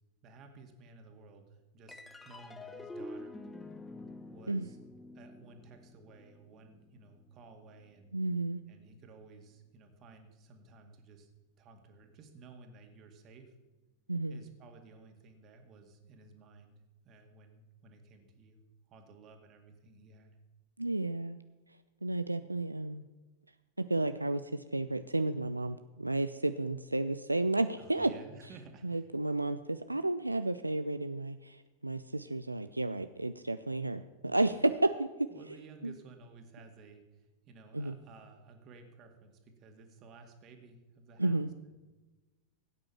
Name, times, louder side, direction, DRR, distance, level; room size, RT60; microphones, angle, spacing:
voice 1, 0.2-3.4 4.3-4.8 5.1-8.1 8.7-11.3 11.6-13.5 14.3-18.6 18.9-20.4 27.8-29.1 35.3-41.8, right 3 dB, 35° right, 4 dB, 2.3 m, -55 dB
sound 1, 1.9-8.6, left 2 dB, 10° left, 0.9 m, -48 dB
voice 2, 8.1-8.6 14.1-14.4 20.8-21.4 22.0-23.0 23.8-28.1 28.8-35.3 35.8-35.9 37.7-37.9 41.2-41.5, right 2 dB, 85° right, 11 dB, 0.4 m, -32 dB
16.5 x 8.9 x 5.8 m, 1.2 s
figure-of-eight pair, 90°, 0 cm